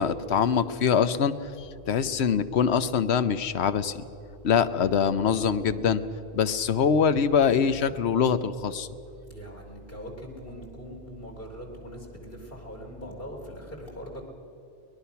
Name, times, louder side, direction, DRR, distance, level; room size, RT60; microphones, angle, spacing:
voice 1, 0.0-4.0 4.4-6.0 6.3-8.9, left 7 dB, 80° left, 13 dB, 1.1 m, -24 dB
voice 2, 4.8-5.2 7.3-7.6 9.3-14.2, equal, 60° left, -1 dB, 3.6 m, -41 dB
23.5 x 20.0 x 5.8 m, 3.0 s
omnidirectional pair, 1.1 m